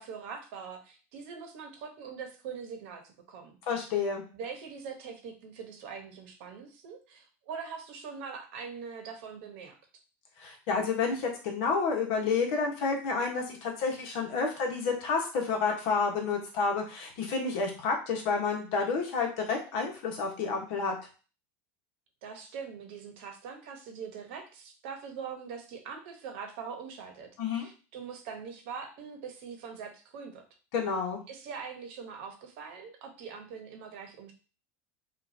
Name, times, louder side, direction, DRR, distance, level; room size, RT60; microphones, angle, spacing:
voice 1, 0.0-3.6 4.3-9.8 22.2-30.4 31.3-34.3, right 6 dB, 60° right, 5 dB, 0.9 m, -42 dB
voice 2, 3.7-4.2 10.4-20.9 27.4-27.7 30.7-31.2, left 5 dB, 55° left, 2 dB, 1.2 m, -30 dB
5.6 x 2.5 x 2.7 m, 0.36 s
supercardioid pair, 165°, 7 cm